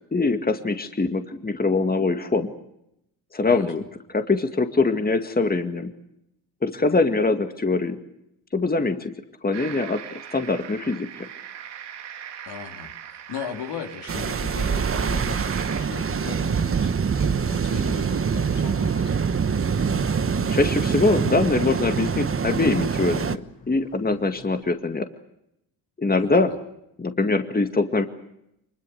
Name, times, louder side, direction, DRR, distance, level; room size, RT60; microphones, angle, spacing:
voice 1, 0.1-2.5 3.3-3.8 4.1-5.9 6.6-8.0 8.5-9.1 9.4-10.0 10.3-11.3 20.5-25.1 26.0-26.5 27.0-28.0, left 3 dB, 20° left, 7 dB, 2.0 m, -23 dB
voice 2, 3.4-3.7 12.5-19.2 26.2-26.4, left 7 dB, 70° left, 4 dB, 3.0 m, -38 dB
sound 1, 9.5-15.8, right 9 dB, 70° right, 2.4 m, -39 dB
sound 2, 14.1-23.4, right 6 dB, 30° right, 1.1 m, -24 dB
Vehicle horn car horn honking / Bus, 18.5-24.6, left 5 dB, 50° left, 6.5 m, -43 dB
24.0 x 21.5 x 7.9 m, 0.80 s
supercardioid pair, 65°, 43 cm